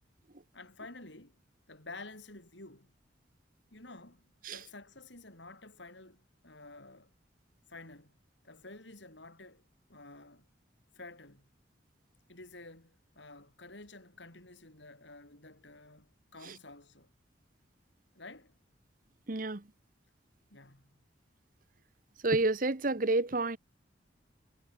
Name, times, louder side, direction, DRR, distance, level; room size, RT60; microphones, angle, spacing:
voice 1, 0.5-1.4 1.7-2.9 3.7-7.1 7.7-8.2 8.4-9.6 9.9-10.5 10.9-11.5 12.3-17.1 18.1-18.5 20.5-21.0, left 2 dB, 75° left, 7.9 m, -51 dB
voice 2, 19.3-19.6 22.2-23.6, right 2 dB, 45° right, 1.1 m, -29 dB
head